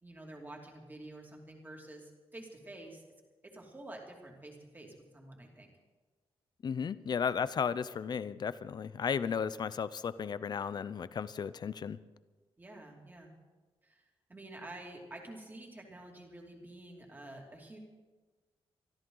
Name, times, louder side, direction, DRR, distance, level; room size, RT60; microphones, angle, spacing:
voice 1, 0.0-3.0 3.4-5.7 12.6-13.3 13.8-17.8, right 1 dB, 20° right, 0 dB, 2.7 m, -49 dB
voice 2, 6.6-12.0, left 6 dB, 45° left, 16 dB, 0.5 m, -34 dB
24.0 x 14.0 x 3.9 m, 1.3 s
wide cardioid pair, 160°, 10 cm